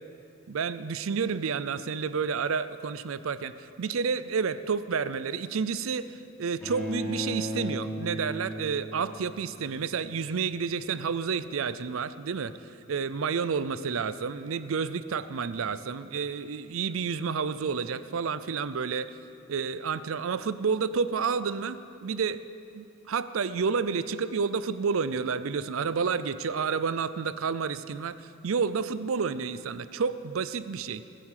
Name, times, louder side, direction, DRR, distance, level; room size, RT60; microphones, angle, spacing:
voice 1, 0.5-19.2 19.5-22.4 22.7-31.0, right 5 dB, 75° right, 14 dB, 0.5 m, -30 dB
Bowed string instrument, 6.6-9.7, equal, 10° left, 3.4 m, -35 dB
18.5 x 9.3 x 7.4 m, 2.6 s
head